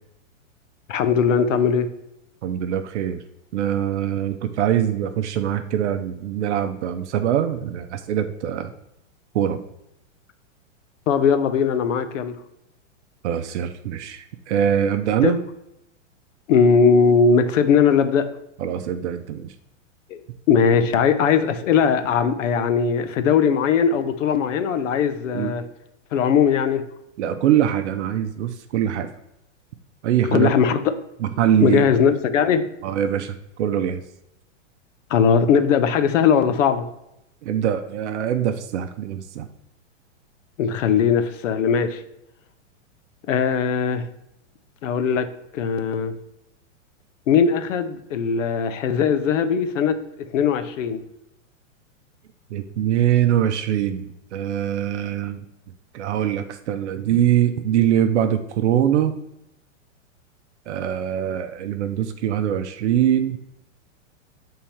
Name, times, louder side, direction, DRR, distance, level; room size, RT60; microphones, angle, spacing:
voice 1, 0.9-1.9 11.1-12.3 15.2-15.3 16.5-18.3 20.1-20.2 20.5-25.6 26.1-26.8 30.3-30.9 31.6-32.7 35.1-36.8 40.6-42.0 43.3-44.1 44.8-45.3 45.5-46.1 47.3-51.0, left 6 dB, 75° left, 11 dB, 0.9 m, -19 dB
voice 2, 2.4-3.2 3.5-8.7 9.3-9.6 13.2-15.4 18.6-19.5 25.3-25.5 27.2-29.1 30.0-30.5 31.2-32.0 32.8-34.0 37.4-39.5 52.5-55.4 55.9-59.2 60.7-63.4, right 10 dB, 60° right, 7 dB, 0.6 m, -23 dB
7.0 x 3.8 x 4.3 m, 0.84 s
hypercardioid pair, 150°, 38 cm